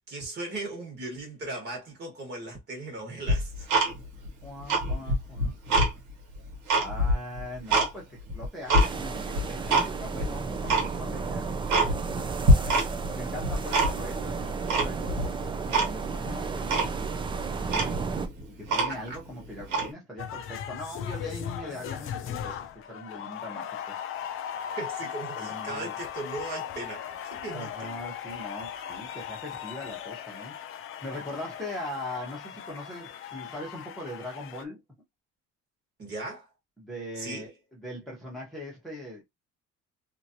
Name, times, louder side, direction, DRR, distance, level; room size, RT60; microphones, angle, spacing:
voice 1, 0.1-3.7 18.9-19.0 24.8-27.9 36.0-36.5 37.2-37.4, right 2 dB, 35° right, 1.5 m, -37 dB
Tick-tock, 3.3-4.3 4.6-5.9 6.3-7.9 8.3-8.9 9.4-9.9 10.2-10.3 10.7-10.9 11.3-11.4 11.7-12.2 12.4-13.1 13.4-14.2 14.7-15.3 15.7-15.9 16.3-16.4 16.7-16.9 17.4-17.5 17.7-19.2 19.6-19.9, right 1 dB, 75° right, 1.2 m, -24 dB
voice 2, 4.4-5.8 6.7-12.0 13.1-16.8 18.6-24.0 25.4-25.9 27.5-30.6 31.0-34.8 36.8-39.2, left 1 dB, ahead, 1.0 m, -41 dB
sound 1, 8.8-18.3, right 4 dB, 15° right, 0.4 m, -33 dB
sound 2, 20.2-34.6, left 9 dB, 45° left, 0.5 m, -38 dB
3.0 x 2.5 x 2.7 m
cardioid pair, 170°, 29 cm